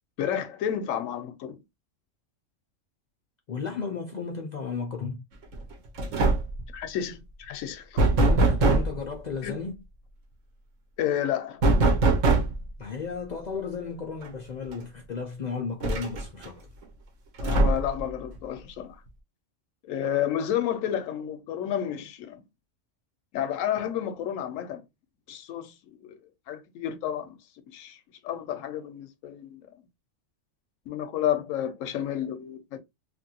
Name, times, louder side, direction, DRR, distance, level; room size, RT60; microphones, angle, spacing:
voice 1, 0.2-1.6 6.7-8.0 9.4-9.5 11.0-11.6 17.4-19.0 19.8-22.4 23.3-24.8 25.3-25.7 26.0-26.2 26.5-27.4 27.7-28.0 28.2-29.6 30.9-32.8, left 10 dB, 85° left, 1.0 m, -30 dB
voice 2, 3.5-5.2 8.2-9.8 12.8-16.6, left 5 dB, 60° left, 0.4 m, -34 dB
sound 1, 5.5-5.7 6.0-6.6 8.0-9.0 11.6-12.7 14.2-14.3 14.7-14.8 15.8-16.5 17.4-18.0, right 2 dB, 75° right, 1.1 m, -22 dB
2.9 x 2.5 x 2.7 m
omnidirectional pair, 1.3 m